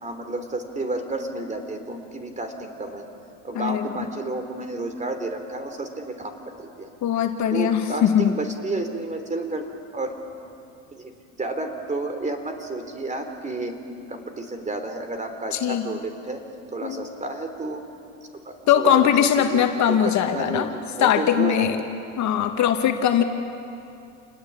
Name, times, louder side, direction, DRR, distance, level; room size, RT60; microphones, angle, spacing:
voice 1, 0.0-3.1 3.4-6.3 6.6-6.9 7.5-9.6 9.9-10.2 10.9-11.1 11.4-13.8 14.1-16.4 16.7-17.8 18.4-19.1 19.4-21.6, right 2 dB, 20° right, 7 dB, 3.6 m, -31 dB
voice 2, 3.5-3.9 7.0-8.3 15.5-15.9 16.8-17.0 18.7-20.7 21.0-21.8 22.2-23.2, left 9 dB, 50° left, 5 dB, 2.1 m, -20 dB
28.5 x 20.0 x 8.8 m, 2.6 s
supercardioid pair, 95°, 37 cm